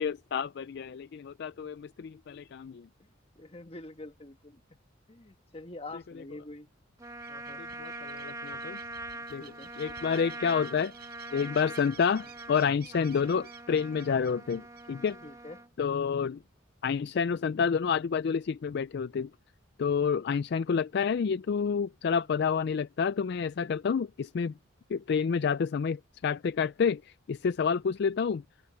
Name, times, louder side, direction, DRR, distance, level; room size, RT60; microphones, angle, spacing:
voice 1, 0.0-2.9 7.6-8.8 9.3-9.4 9.8-10.9 11.3-15.2 15.8-16.4 16.8-19.3 19.8-24.5 24.9-28.4, left 6 dB, 55° left, 0.3 m, -29 dB
voice 2, 3.3-4.8 5.1-6.7 7.3-7.6 9.4-9.7 15.2-15.6 22.1-22.3, left 2 dB, 30° left, 1.4 m, -46 dB
Trumpet, 7.0-15.7, right 2 dB, 15° right, 2.3 m, -43 dB
sound 1, 7.0-15.1, right 9 dB, 50° right, 6.9 m, -54 dB
open air
head